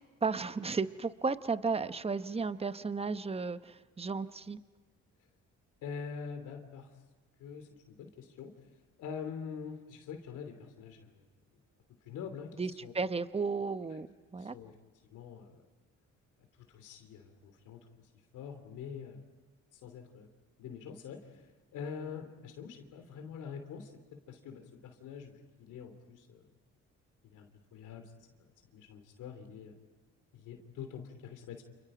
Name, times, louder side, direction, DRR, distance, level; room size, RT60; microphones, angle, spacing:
voice 1, 0.2-4.6 12.6-14.1 14.3-14.5, right 4 dB, 20° right, 12 dB, 0.9 m, -34 dB
voice 2, 5.8-6.9 7.4-8.5 9.0-11.3 12.0-12.9 14.4-14.7 15.1-15.7 16.7-17.8 18.3-19.2 19.7-20.3 20.6-21.5 21.7-23.9 24.3-26.5 27.2-28.1 28.7-29.7 30.3-31.6, left 6 dB, 90° left, 6 dB, 3.1 m, -45 dB
29.5 x 28.5 x 5.0 m, 1.3 s
cardioid pair, 90°, 30 cm